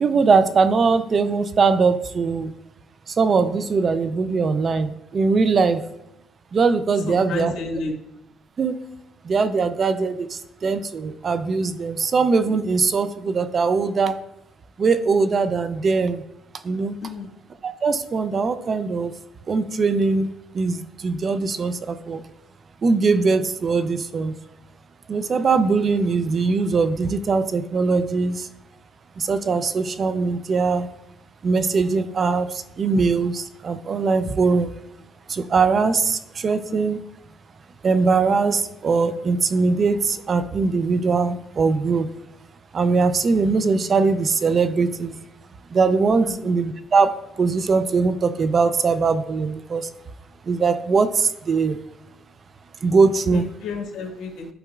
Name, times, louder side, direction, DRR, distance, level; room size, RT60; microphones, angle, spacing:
voice 1, 0.0-2.5 3.1-5.8 6.5-7.5 8.6-8.8 9.2-14.2 14.8-16.2 16.6-17.0 17.6-19.1 19.5-22.2 22.8-24.4 25.1-28.5 29.2-30.9 31.4-34.7 35.3-37.0 37.8-42.1 42.7-45.2 45.7-49.9 50.4-51.8 52.8-53.5, right 4 dB, 35° right, 11 dB, 0.4 m, -21 dB
voice 2, 7.1-7.9 17.0-17.3 46.2-46.5 53.3-54.5, left 4 dB, 70° left, 1 dB, 1.7 m, -31 dB
11.0 x 4.8 x 2.4 m, 0.85 s
cardioid pair, 115°, 0 cm